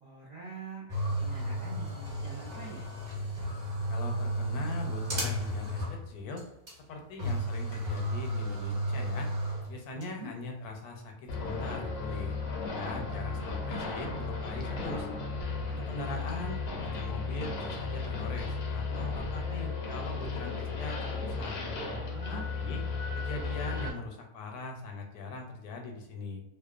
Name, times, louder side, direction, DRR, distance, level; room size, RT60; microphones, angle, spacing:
voice 1, 0.0-2.9 9.9-10.3 22.0-22.5, right 4 dB, 65° right, -6 dB, 0.4 m, -45 dB
sound 1, 0.9-6.1 6.4-6.5 6.7-6.8 7.2-10.0, equal, 35° right, 0.9 m, -33 dB
voice 2, 3.9-6.4 6.9-9.3 9.7-12.4 12.7-15.1 15.7-21.6 22.3-22.8 23.1-26.4, left 3 dB, 85° left, 2 dB, 1.1 m, -40 dB
sound 2, 11.3-23.9, left 4 dB, 65° left, 0.6 m, -35 dB
2.7 x 2.1 x 2.3 m, 0.88 s
omnidirectional pair, 1.6 m